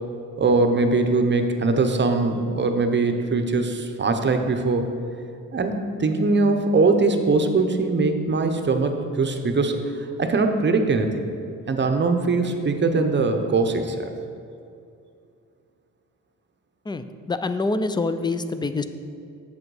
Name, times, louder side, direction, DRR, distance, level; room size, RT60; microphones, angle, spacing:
voice 1, 0.4-4.9 5.5-11.2 11.7-14.1, right 3 dB, 35° right, 6 dB, 0.7 m, -21 dB
voice 2, 16.8-18.8, left 3 dB, 15° left, 10 dB, 0.3 m, -26 dB
7.6 x 7.0 x 4.8 m, 2.5 s
cardioid pair, 120°, 32 cm